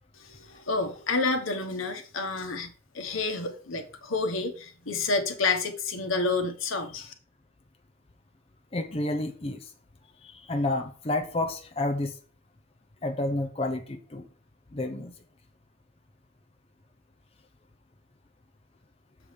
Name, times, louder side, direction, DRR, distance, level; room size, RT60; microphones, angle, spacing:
voice 1, 0.2-7.1, left 3 dB, 80° left, 1.3 m, -29 dB
voice 2, 8.7-9.7 10.2-12.1 13.0-14.3 14.7-15.1, left 2 dB, 30° left, 0.6 m, -30 dB
7.1 x 4.8 x 5.1 m
head